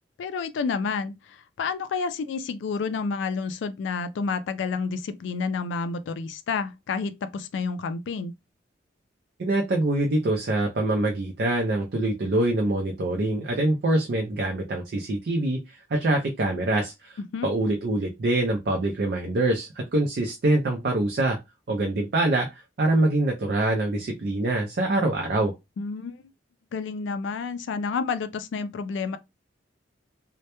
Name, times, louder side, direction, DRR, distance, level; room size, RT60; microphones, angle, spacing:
voice 1, 0.2-8.3 17.2-17.5 25.8-26.2 26.7-29.2, left 5 dB, 70° left, 0.3 m, -30 dB
voice 2, 9.4-21.4 21.7-22.5 22.8-25.5, right 2 dB, 55° right, 0.4 m, -24 dB
2.1 x 2.0 x 2.9 m
head